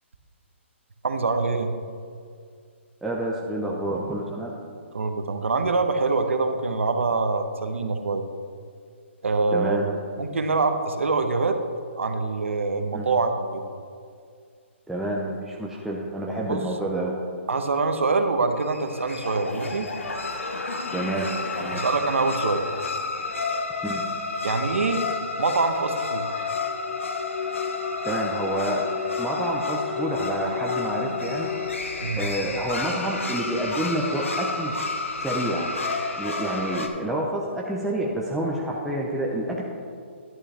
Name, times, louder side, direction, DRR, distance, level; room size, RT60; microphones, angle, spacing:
voice 1, 1.0-1.7 4.9-8.2 9.2-11.6 12.0-13.6 16.4-16.6 17.5-19.9 21.7-22.6 24.4-25.1 25.4-26.3 32.0-32.3, right 3 dB, 80° right, 7 dB, 0.9 m, -25 dB
voice 2, 3.0-4.5 9.5-9.9 12.9-13.1 14.9-17.1 20.9-21.3 21.6-21.8 23.8-24.0 28.0-28.8 29.2-31.5 32.2-34.7 35.2-35.7 36.2-39.6, right 1 dB, ahead, -4 dB, 0.6 m, -28 dB
sound 1, 18.6-36.9, left 4 dB, 85° left, 1.1 m, -30 dB
11.0 x 8.6 x 3.4 m, 2.2 s
hypercardioid pair, 150°, 7 cm